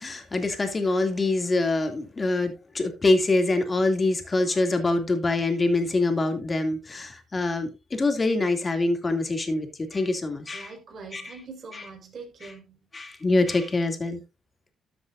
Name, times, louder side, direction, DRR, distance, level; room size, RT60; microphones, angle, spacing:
voice 1, 0.0-10.7 11.1-11.3 11.7-11.8 12.9-14.2, left 2 dB, 30° left, 2.6 m, -25 dB
voice 2, 10.5-12.8, right 4 dB, 50° right, 5.0 m, -43 dB
13.0 x 7.8 x 2.6 m
cardioid pair, 90°, 0 cm